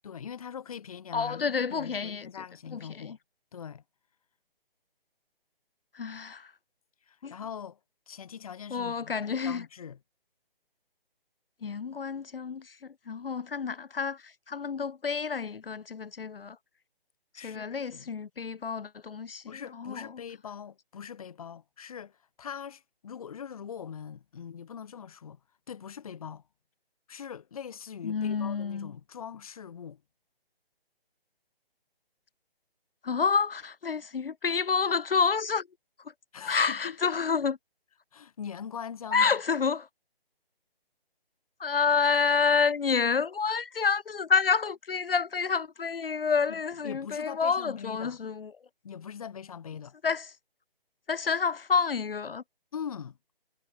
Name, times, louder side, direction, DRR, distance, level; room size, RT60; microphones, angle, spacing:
voice 1, 0.0-3.2 3.5-3.8 7.1-7.8 8.1-10.0 17.3-18.1 19.5-25.4 25.7-26.4 27.1-30.0 36.3-37.0 38.1-39.4 46.5-48.2 48.8-50.0 52.7-53.2, left 7 dB, 35° left, 0.9 m, -42 dB
voice 2, 1.1-2.3 2.7-3.2 5.9-6.5 7.2-7.3 8.7-9.6 11.6-12.8 13.1-16.6 17.4-19.4 19.8-20.1 28.0-28.9 33.0-35.6 36.5-37.6 39.1-39.9 41.6-48.5 50.0-50.3 51.1-52.4, left 5 dB, 70° left, 0.7 m, -28 dB
figure-of-eight pair, 145°, 30 cm